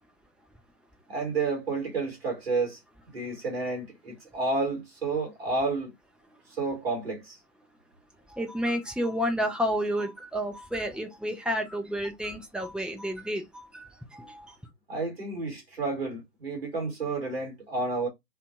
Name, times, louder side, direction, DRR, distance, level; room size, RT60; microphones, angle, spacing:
voice 1, 1.1-2.8 3.1-5.9 6.6-7.4 14.9-18.1, right 3 dB, 35° right, 1.2 m, -30 dB
voice 2, 8.3-14.6, equal, ahead, 0.3 m, -31 dB
2.5 x 2.4 x 2.4 m
figure-of-eight pair, 150°, 50 cm